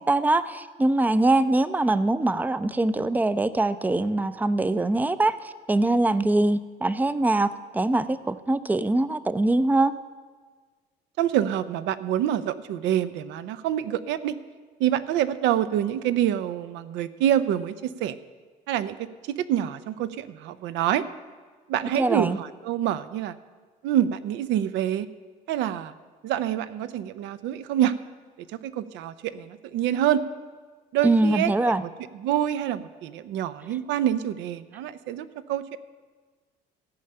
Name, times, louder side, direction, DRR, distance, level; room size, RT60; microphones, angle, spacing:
voice 1, 0.0-9.9 21.9-22.4 31.0-31.8, right 2 dB, 10° right, 14 dB, 0.5 m, -23 dB
voice 2, 11.2-14.4 14.8-18.2 18.7-21.0 21.7-23.3 23.8-25.1 25.5-25.9 26.2-28.0 28.5-30.2 30.9-31.5 31.8-31.9 32.2-35.8, right 11 dB, 75° right, 14 dB, 0.7 m, -26 dB
14.5 x 5.6 x 8.8 m, 1.5 s
cardioid pair, 110°, 19 cm